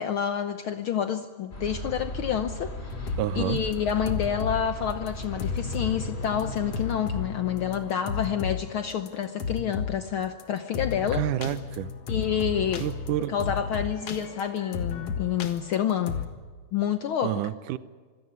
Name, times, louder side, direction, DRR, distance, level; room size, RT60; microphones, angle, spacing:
voice 1, 0.0-11.2 12.1-12.9 13.3-16.2 16.7-17.4, left 9 dB, 80° left, 9 dB, 1.1 m, -28 dB
sound 1, 1.5-6.9, equal, 20° left, 3.6 m, -36 dB
sound 2, 2.9-3.3 3.6-4.6 4.9-5.1 5.4-8.6 8.9-10.0 10.2-10.4 10.7-16.3, left 5 dB, 55° left, 2.5 m, -33 dB
voice 2, 3.2-3.6 11.1-11.9 12.8-13.3 17.2-17.8, right 13 dB, 85° right, 15 dB, 2.4 m, -29 dB
26.0 x 17.0 x 9.5 m, 1.5 s
omnidirectional pair, 3.6 m